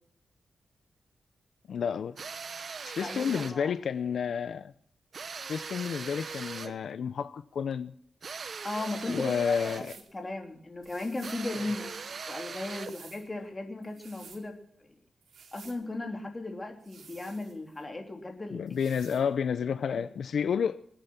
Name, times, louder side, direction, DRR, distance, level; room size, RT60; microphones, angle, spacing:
voice 1, 1.7-2.1 2.6-4.7 5.5-7.9 9.1-9.9 18.5-20.8, left 7 dB, 70° left, 0.6 m, -30 dB
sound 1, 2.2-3.6 5.1-6.8 8.2-10.0 11.2-13.0, right 5 dB, 50° right, 0.8 m, -40 dB
voice 2, 3.0-3.7 8.6-9.8 10.1-11.9 12.3-14.5 14.8-14.9 15.5-18.6 19.8-20.0, left 2 dB, 25° left, 3.3 m, -36 dB
sound 2, 9.6-10.1 10.8-11.5 12.4-13.3 13.8-14.4 15.2-15.8 16.8-17.8 18.7-19.3, right 6 dB, 85° right, 2.7 m, -53 dB
25.5 x 8.9 x 5.8 m
wide cardioid pair, 120°, 0 cm